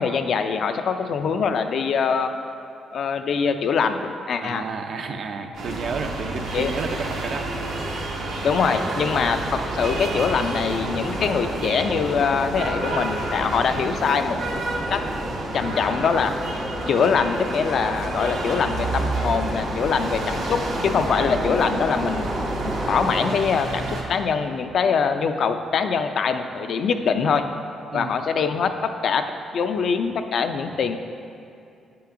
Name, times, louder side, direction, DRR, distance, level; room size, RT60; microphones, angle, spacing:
voice 1, 0.0-2.3 2.9-4.6 6.5-6.7 8.4-14.4 14.9-15.0 15.5-22.3 22.6-27.4 27.9-31.0, left 6 dB, 60° left, 8 dB, 0.3 m, -23 dB
voice 2, 4.4-8.0 27.9-28.1, right 4 dB, 60° right, 5 dB, 0.4 m, -32 dB
sound 1, 5.5-24.0, right 2 dB, 80° right, 0.9 m, -30 dB
sound 2, 8.7-23.3, equal, 5° right, 0.4 m, -32 dB
7.9 x 5.6 x 2.5 m, 2.5 s
cardioid pair, 90°, 0 cm